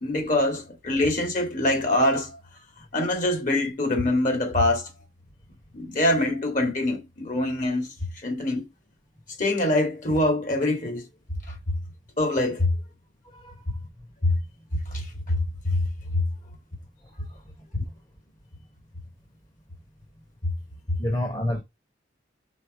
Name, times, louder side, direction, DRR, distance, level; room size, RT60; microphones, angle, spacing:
voice 1, 0.0-2.4 2.9-4.9 5.7-7.9 8.2-8.7 9.4-11.1 12.2-12.7 14.2-14.4 14.9-15.8 16.1-16.2 20.4-20.5 20.9-21.0, left 1 dB, 45° left, 2.5 m, -24 dB
voice 2, 13.2-13.8 17.0-17.7 21.0-21.6, left 1 dB, 25° left, 1.3 m, -31 dB
5.6 x 4.0 x 5.1 m
head